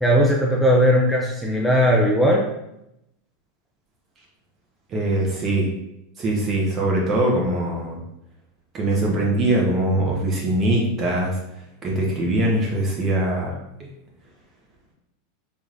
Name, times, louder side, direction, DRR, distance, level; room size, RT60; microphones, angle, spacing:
voice 1, 0.0-2.5, equal, ahead, -2 dB, 0.5 m, -18 dB
voice 2, 4.9-5.7 6.2-8.0 8.7-11.4 11.8-13.5, right 1 dB, 35° right, -2 dB, 1.2 m, -22 dB
3.4 x 3.0 x 2.6 m, 0.83 s
hypercardioid pair, 90°, 0 cm